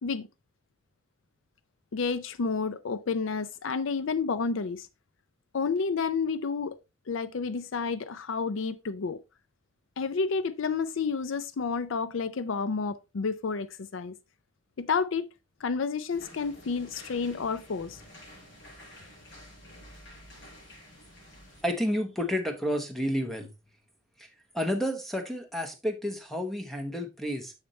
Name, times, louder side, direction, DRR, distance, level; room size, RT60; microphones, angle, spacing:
voice 1, 1.9-4.9 5.5-6.8 7.1-9.2 10.0-14.2 14.8-15.3 15.6-18.0, left 5 dB, 80° left, 0.5 m, -30 dB
sound 1, 16.1-21.6, left 1 dB, 65° left, 5.0 m, -50 dB
voice 2, 21.6-23.5 24.2-24.3 24.5-27.5, equal, ahead, 0.9 m, -30 dB
6.9 x 6.6 x 3.1 m
head